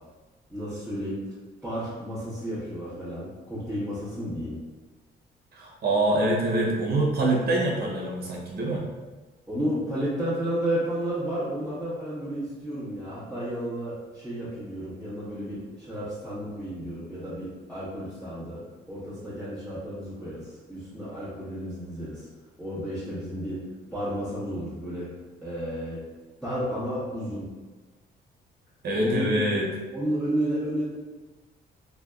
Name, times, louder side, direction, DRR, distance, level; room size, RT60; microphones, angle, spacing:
voice 1, 0.5-1.3 1.6-4.6 9.5-18.6 18.9-22.3 22.6-25.1 25.4-26.0 26.4-27.5 29.0-29.3 29.9-30.8, equal, 5° left, -14 dB, 1.1 m, -32 dB
voice 2, 5.5-8.9 28.8-29.7, right 1 dB, 55° right, -2 dB, 0.8 m, -25 dB
3.3 x 2.2 x 2.3 m, 1.2 s
cardioid pair, 90°, 20 cm